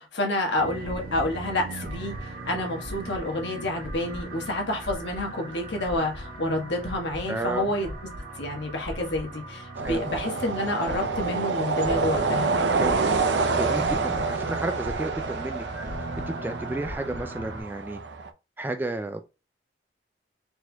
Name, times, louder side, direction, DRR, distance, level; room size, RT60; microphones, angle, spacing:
voice 1, 0.0-7.9 8.4-12.5, left 1 dB, 70° left, 1.4 m, -29 dB
sound 1, 0.6-17.6, right 1 dB, 55° right, 1.4 m, -38 dB
voice 2, 7.3-7.7 9.8-10.2 12.7-13.0 13.5-15.9 16.3-18.0 18.6-19.2, right 2 dB, 10° right, 0.3 m, -32 dB
sound 2, 9.8-18.3, right 4 dB, 75° right, 0.6 m, -27 dB
4.4 x 4.3 x 2.3 m
head